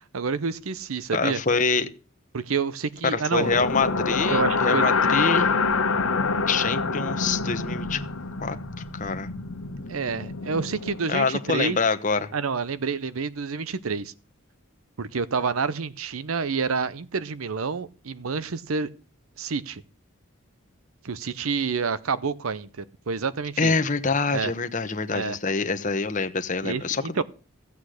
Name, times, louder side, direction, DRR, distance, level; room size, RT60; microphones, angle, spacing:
voice 1, 0.0-1.4 2.3-3.5 4.3-4.8 9.9-11.8 12.3-14.1 15.0-18.9 19.4-19.8 21.0-23.7 24.3-24.5 25.1-25.4 26.6-27.2, right 5 dB, 85° right, 0.7 m, -28 dB
voice 2, 1.1-1.9 3.0-5.5 6.5-8.0 8.4-9.3 11.1-12.3 23.6-27.2, left 4 dB, 35° left, 1.0 m, -25 dB
sound 1, 3.3-11.4, left 4 dB, 90° left, 1.2 m, -26 dB
15.5 x 8.4 x 6.4 m
head